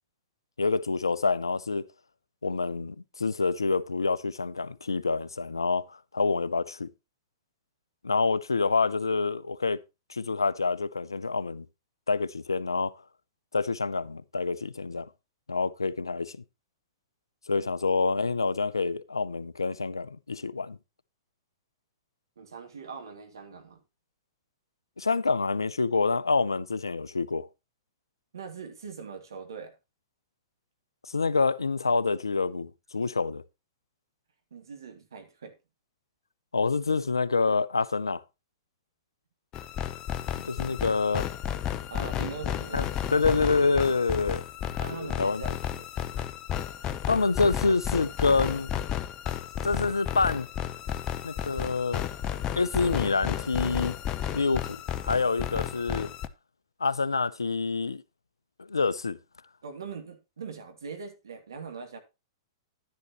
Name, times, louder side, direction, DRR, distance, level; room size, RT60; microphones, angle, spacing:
voice 1, 0.6-1.9 2.4-6.9 8.0-9.8 10.1-11.7 12.1-12.9 13.5-15.1 15.5-16.4 17.5-20.8 25.0-27.5 31.0-33.4 36.5-38.2 40.4-41.3 42.7-44.4 44.9-45.4 47.1-48.7 49.6-50.5 51.2-52.0 52.5-54.0 54.3-56.1 56.8-58.0 58.6-59.2, left 4 dB, 80° left, 0.7 m, -27 dB
voice 2, 22.4-23.8 28.3-29.7 34.5-35.6 40.8-40.9 41.9-42.9 44.8-45.9 59.6-62.0, right 5 dB, 70° right, 2.7 m, -41 dB
sound 1, 39.5-56.3, left 10 dB, 30° left, 0.8 m, -33 dB
11.0 x 10.5 x 3.0 m
figure-of-eight pair, 105°, 2 cm